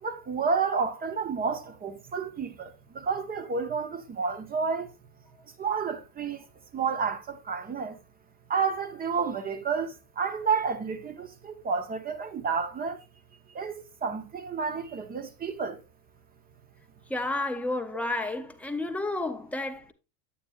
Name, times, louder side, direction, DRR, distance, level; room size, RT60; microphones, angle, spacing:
voice 1, 0.0-4.9 5.6-6.4 6.7-8.0 8.5-13.0 13.5-15.8, right 5 dB, 20° right, 0.9 m, -30 dB
voice 2, 17.1-19.9, left 2 dB, 5° left, 0.3 m, -31 dB
8.9 x 8.5 x 2.3 m
supercardioid pair, 115°, 48 cm